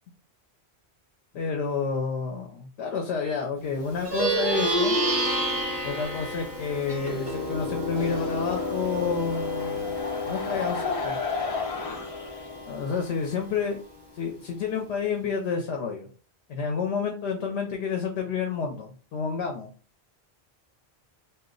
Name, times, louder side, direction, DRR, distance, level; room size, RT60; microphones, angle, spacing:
voice 1, 1.3-5.0 5.8-9.9 10.3-11.2 12.7-13.8 14.1-16.1 16.5-19.7, left 5 dB, 80° left, 2 dB, 0.8 m, -30 dB
Plucked string instrument, 3.9-13.6, equal, 15° right, 1.1 m, -30 dB
sound 1, 7.9-12.6, left 4 dB, 40° left, 0.5 m, -34 dB
2.3 x 2.0 x 3.6 m, 0.40 s
omnidirectional pair, 1.1 m